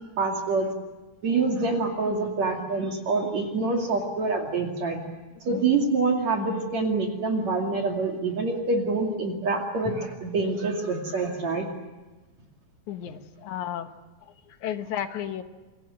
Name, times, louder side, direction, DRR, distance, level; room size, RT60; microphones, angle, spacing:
voice 1, 0.2-0.7 1.2-5.0 5.4-11.7, right 3 dB, 55° right, 1 dB, 3.6 m, -26 dB
voice 2, 12.9-13.9 14.6-15.4, left 10 dB, 65° left, 9 dB, 2.4 m, -32 dB
29.0 x 24.0 x 7.8 m, 1.2 s
omnidirectional pair, 4.0 m